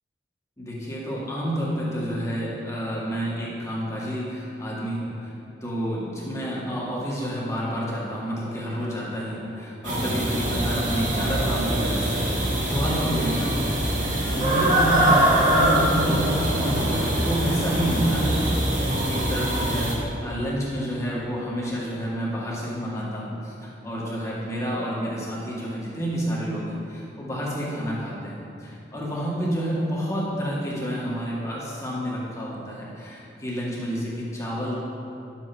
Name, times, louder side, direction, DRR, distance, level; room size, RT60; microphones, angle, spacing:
voice 1, 0.6-5.3 5.6-34.8, equal, 15° left, -6 dB, 2.0 m, -29 dB
sound 1, 9.8-19.9, right 1 dB, 45° right, 1.9 m, -23 dB
11.0 x 7.5 x 4.5 m, 2.8 s
head